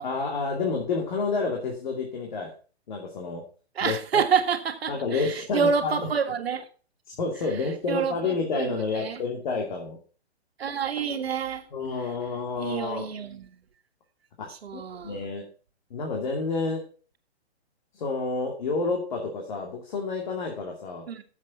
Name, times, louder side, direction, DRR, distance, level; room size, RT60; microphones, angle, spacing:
voice 1, 0.0-2.5 2.9-3.4 3.8-4.0 4.9-6.1 7.1-10.0 11.7-13.1 14.4-15.4 15.9-16.8 17.9-21.0, left 4 dB, 45° left, 2.5 m, -29 dB
voice 2, 3.8-6.7 7.9-8.2 8.5-9.2 10.6-11.7 12.6-13.5 14.5-15.2 21.1-21.2, right 6 dB, 65° right, 1.9 m, -28 dB
10.5 x 7.5 x 5.8 m
hypercardioid pair, 165°, 33 cm